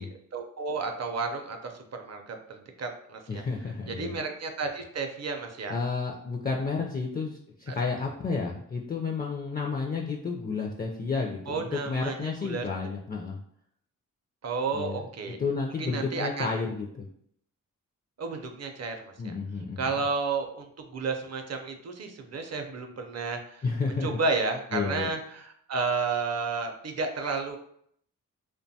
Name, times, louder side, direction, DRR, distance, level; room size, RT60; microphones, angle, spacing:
voice 1, 0.0-3.4 3.9-5.7 7.7-7.8 11.5-12.6 14.4-15.4 15.8-16.5 18.2-19.3 19.8-23.6 24.0-27.6, right 4 dB, 50° right, 5 dB, 0.5 m, -32 dB
voice 2, 3.3-4.2 5.7-13.4 14.7-17.1 19.2-19.8 23.6-24.2 24.7-25.1, left 4 dB, 25° left, 1 dB, 0.4 m, -31 dB
2.5 x 2.2 x 2.7 m, 0.69 s
cardioid pair, 45°, 34 cm